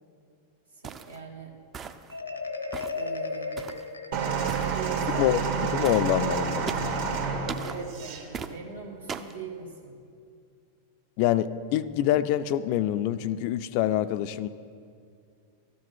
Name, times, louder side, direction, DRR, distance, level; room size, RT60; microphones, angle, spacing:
voice 1, 0.7-1.5 2.9-3.6 4.6-5.5 7.6-10.0, right 4 dB, 75° right, 0 dB, 1.6 m, -41 dB
sound 1, 0.8-1.2 1.7-2.2 2.7-3.0 3.6-3.9 4.5-4.7 5.8-6.1 6.7-7.0 7.5-7.8 8.3-8.5 9.1-9.4, right 6 dB, 25° right, 0.4 m, -37 dB
Marimba xylophone, 2.1-4.9, left 3 dB, 85° left, 0.7 m, -35 dB
sound 2, 4.1-8.2 9.1-9.3, right 5 dB, 55° right, 1.5 m, -29 dB
voice 2, 5.7-6.7 11.2-14.5, left 12 dB, 45° left, 13 dB, 0.3 m, -25 dB
13.0 x 8.3 x 4.4 m, 2.3 s
figure-of-eight pair, 90°, 0 cm